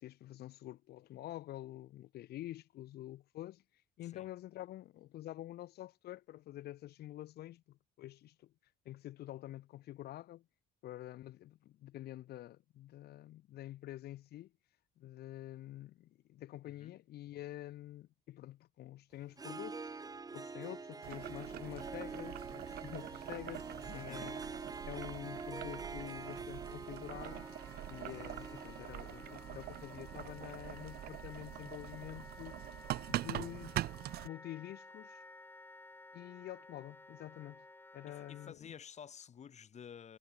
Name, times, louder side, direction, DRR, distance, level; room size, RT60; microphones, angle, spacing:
voice 1, 0.0-3.6 4.0-8.5 8.9-10.5 10.8-14.5 15.0-20.0 20.3-24.4 24.9-27.5 27.9-32.6 33.1-33.8 34.2-35.2 36.1-37.7 37.9-38.7, left 14 dB, 70° left, 2.2 m, -48 dB
voice 2, 16.6-17.0 23.8-24.3 38.1-40.2, left 8 dB, 40° left, 3.6 m, -52 dB
Harp, 19.3-31.2, right 4 dB, 20° right, 3.1 m, -47 dB
Boiling, 21.0-34.3, right 15 dB, 70° right, 0.8 m, -44 dB
Wind instrument woodwind instrument, 27.1-38.5, left 2 dB, 10° left, 4.7 m, -55 dB
cardioid pair, 110°, 17 cm